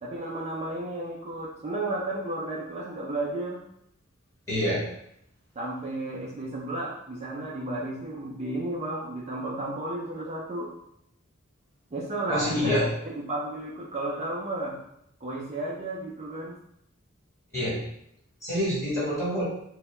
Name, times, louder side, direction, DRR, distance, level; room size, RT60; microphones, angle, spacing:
voice 1, 0.0-3.6 5.6-10.7 11.9-14.8 15.2-16.6, right 2 dB, 30° right, -5 dB, 0.4 m, -33 dB
voice 2, 4.5-4.8 12.3-12.8 17.5-17.8 18.4-19.4, equal, 15° left, -9 dB, 1.2 m, -26 dB
2.7 x 2.2 x 3.0 m, 0.75 s
head